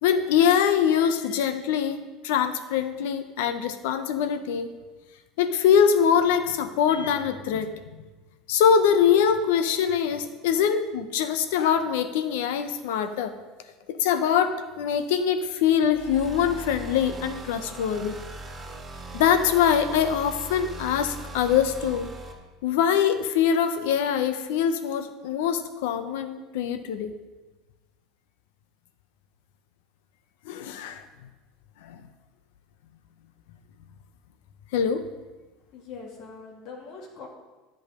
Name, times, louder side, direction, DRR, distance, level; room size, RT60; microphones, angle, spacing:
voice 1, 0.0-4.7 5.4-8.0 8.5-13.3 13.9-18.2 19.1-22.1 22.6-27.1 30.5-31.0 31.8-32.0 34.7-35.0, left 8 dB, 80° left, 10 dB, 0.8 m, -23 dB
sound 1, 15.9-22.3, right 2 dB, 25° right, 2.6 m, -39 dB
voice 2, 35.7-37.3, left 4 dB, 55° left, 0 dB, 2.3 m, -42 dB
10.5 x 6.4 x 4.9 m, 1.2 s
supercardioid pair, 105°, 0 cm